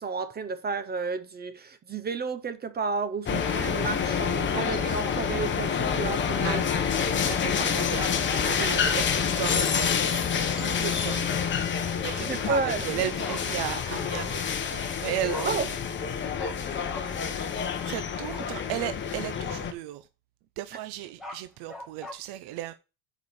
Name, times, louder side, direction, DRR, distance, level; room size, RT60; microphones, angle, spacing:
voice 1, 0.0-6.8 8.6-8.8 12.2-12.8 15.4-15.7, right 4 dB, 20° right, 0.5 m, -32 dB
sound 1, 3.3-19.7, left 7 dB, 20° left, 0.9 m, -28 dB
voice 2, 7.2-10.3 10.6-11.3 11.7-15.7 16.7-20.1 20.6-22.7, right 13 dB, 50° right, 0.7 m, -36 dB
Bark, 13.2-13.4 15.3-15.4 16.4-16.5 16.9-17.0 18.3-18.5 21.0-22.1, left 1 dB, ahead, 1.6 m, -39 dB
6.8 x 5.2 x 6.9 m
cardioid pair, 165°, 50 cm